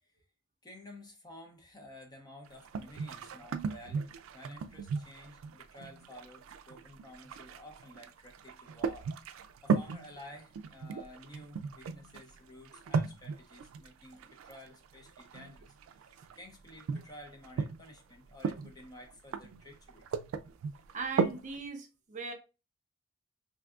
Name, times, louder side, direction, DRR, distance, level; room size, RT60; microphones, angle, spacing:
voice 1, 0.6-9.1 9.6-20.1, left 1 dB, 20° left, 0.6 m, -52 dB
sound 1, 2.5-18.0 18.3-21.6, right 5 dB, 90° right, 0.3 m, -36 dB
voice 2, 20.9-22.3, right 4 dB, 40° right, 0.6 m, -39 dB
3.5 x 2.6 x 2.4 m
head